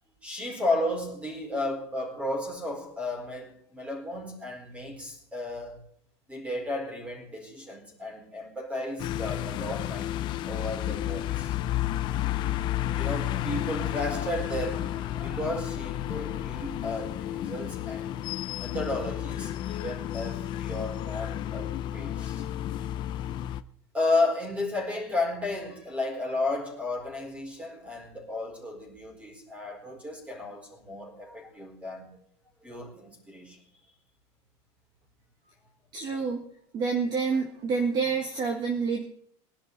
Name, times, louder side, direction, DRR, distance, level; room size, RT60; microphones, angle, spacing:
voice 1, 0.2-5.8 6.3-10.1 10.4-11.5 12.9-18.1 18.6-22.4 23.9-32.2 32.6-33.6, left 2 dB, 10° right, 4.5 m, -33 dB
sound 1, 9.0-23.6, left 12 dB, 35° left, 0.6 m, -32 dB
voice 2, 35.9-36.4 36.7-39.0, right 5 dB, 30° right, 1.7 m, -28 dB
21.0 x 11.5 x 4.1 m
supercardioid pair, 165°, 14 cm